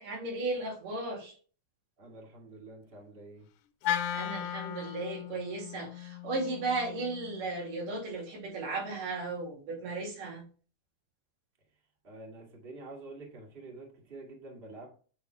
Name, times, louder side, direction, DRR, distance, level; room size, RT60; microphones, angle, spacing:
voice 1, 0.0-1.4 4.1-10.4, right 3 dB, 80° right, 3.9 m, -35 dB
voice 2, 2.0-3.5 12.0-14.9, right 2 dB, 20° right, 1.7 m, -47 dB
Wind instrument woodwind instrument, 3.8-8.1, left 11 dB, 90° left, 2.2 m, -37 dB
8.8 x 3.7 x 4.5 m
omnidirectional pair, 3.7 m